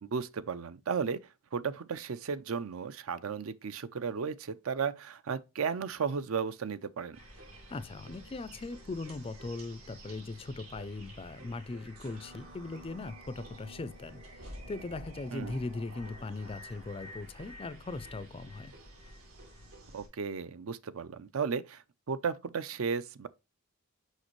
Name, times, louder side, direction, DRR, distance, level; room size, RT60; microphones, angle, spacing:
voice 1, 0.0-1.2 1.5-7.2 15.3-15.6 19.9-23.3, right 6 dB, 65° right, 0.5 m, -34 dB
sound 1, 7.1-20.1, right 1 dB, 90° right, 2.9 m, -50 dB
voice 2, 7.7-18.7, left 3 dB, 25° left, 0.4 m, -39 dB
6.4 x 5.2 x 3.1 m
head